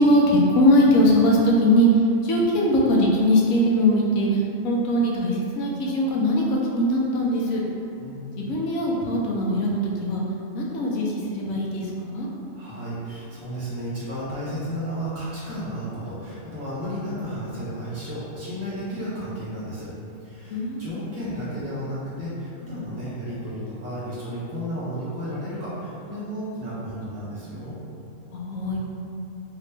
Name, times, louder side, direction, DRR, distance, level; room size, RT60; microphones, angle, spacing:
voice 1, 0.0-7.6 8.4-10.2 10.5-12.3 20.5-20.9 28.3-28.8, equal, 85° left, -2 dB, 1.0 m, -21 dB
voice 2, 12.5-19.9 20.2-27.7, equal, 15° right, -11 dB, 0.8 m, -33 dB
3.1 x 2.9 x 3.2 m, 2.6 s
omnidirectional pair, 1.4 m